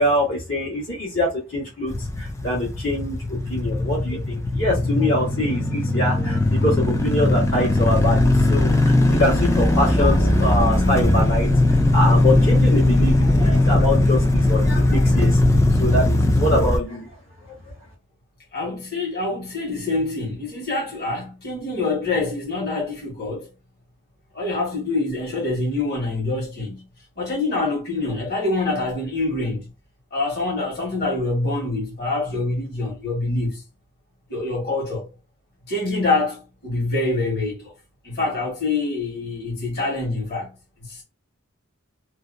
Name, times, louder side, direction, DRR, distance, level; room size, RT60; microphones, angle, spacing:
voice 1, 0.0-11.5 11.9-15.4 15.8-17.1, left 1 dB, 65° left, 1.2 m, -24 dB
sound 1, 1.9-16.8, left 1 dB, 15° left, 0.3 m, -19 dB
voice 2, 18.5-23.5 24.3-26.8 27.2-29.7 30.1-33.6 34.3-35.1 35.7-37.7 38.0-40.5 40.9-41.0, left 2 dB, 50° left, 1.3 m, -25 dB
2.7 x 2.2 x 2.5 m
head